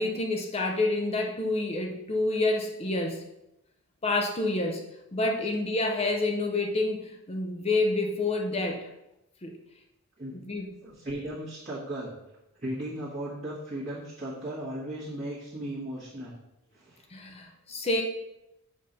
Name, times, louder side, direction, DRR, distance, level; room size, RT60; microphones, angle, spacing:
voice 1, 0.0-3.2 4.0-4.8 5.1-8.9 9.4-9.6 10.4-10.7 17.1-18.0, left 2 dB, 30° left, 1 dB, 0.7 m, -28 dB
voice 2, 10.8-12.1 12.6-16.3 16.7-17.0, right 1 dB, 35° right, -12 dB, 1.8 m, -36 dB
7.7 x 2.9 x 5.2 m, 0.87 s
head